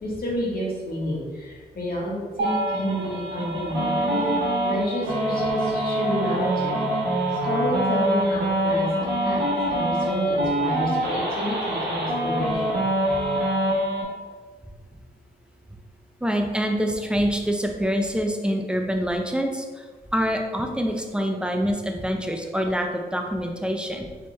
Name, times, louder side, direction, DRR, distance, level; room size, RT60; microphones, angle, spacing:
voice 1, 0.0-4.3 4.6-7.0 7.4-8.9 9.2-9.4 9.7-12.8, equal, 60° left, -4 dB, 1.4 m, -29 dB
sound 1, 2.4-14.0, right 1 dB, 85° right, 1.1 m, -25 dB
voice 2, 16.2-19.8 20.1-24.1, equal, 5° right, 3 dB, 0.6 m, -25 dB
4.2 x 3.5 x 3.2 m, 1.4 s
cardioid pair, 80°, 17 cm